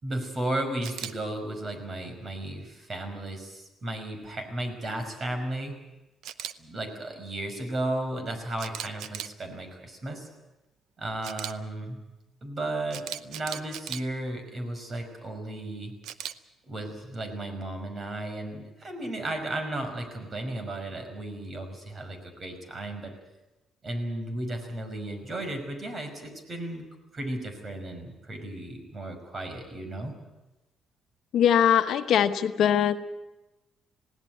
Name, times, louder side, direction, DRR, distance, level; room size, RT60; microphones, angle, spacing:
voice 1, 0.0-5.7 6.6-10.3 11.0-12.0 12.4-15.9 16.7-23.1 23.8-26.8 27.1-30.1, right 1 dB, 40° right, 7 dB, 5.4 m, -34 dB
Camera, 0.8-1.1 6.2-6.5 8.6-9.3 11.2-11.5 12.9-14.0 16.0-16.3, right 10 dB, 85° right, 0.8 m, -37 dB
voice 2, 31.3-33.0, left 9 dB, 75° left, 9 dB, 1.1 m, -21 dB
20.0 x 17.0 x 9.4 m, 1.0 s
cardioid pair, 90°, 0 cm